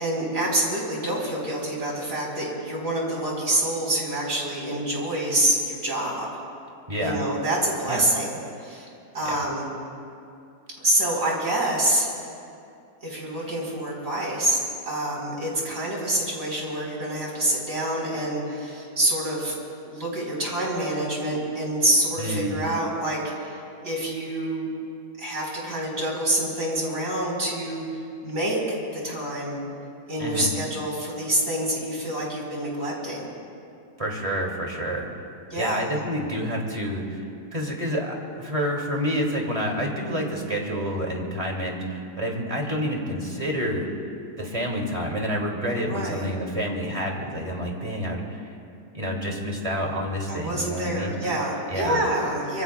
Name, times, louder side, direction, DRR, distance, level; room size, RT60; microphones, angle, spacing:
voice 1, 0.0-6.3 7.0-8.3 8.6-8.9 9.1-9.6 10.8-12.1 13.0-19.6 19.8-24.7 25.2-27.8 28.2-28.6 29.0-29.6 30.1-33.3 35.5-35.8 45.9-46.2 50.3-52.6, right 1 dB, 55° right, -3 dB, 4.9 m, -26 dB
voice 2, 6.9-7.2 7.9-8.0 9.2-9.4 22.2-22.6 30.2-30.5 34.0-35.1 35.5-37.2 37.5-43.9 44.4-48.5 48.9-51.2 51.7-52.0, equal, 20° right, -1 dB, 2.5 m, -28 dB
25.5 x 24.0 x 2.3 m, 2.5 s
omnidirectional pair, 1.8 m